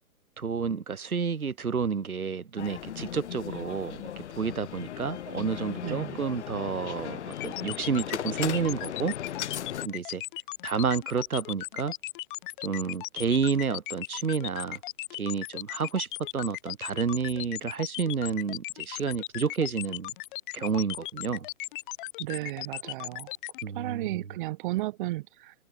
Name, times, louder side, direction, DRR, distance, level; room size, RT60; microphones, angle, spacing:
voice 1, 0.4-9.1 9.8-10.2 10.6-11.9 12.6-14.8 15.1-16.1 16.3-20.1 20.5-21.5 23.6-24.2, right 6 dB, 75° right, 2.9 m, -30 dB
sound 1, 2.6-9.9, left 10 dB, 50° left, 2.5 m, -37 dB
voice 2, 5.8-6.3 22.2-23.3 23.7-25.5, right 17 dB, 35° right, 4.0 m, -34 dB
sound 2, 7.3-23.6, left 18 dB, 35° left, 5.5 m, -37 dB
open air
figure-of-eight pair, 135°, 43 cm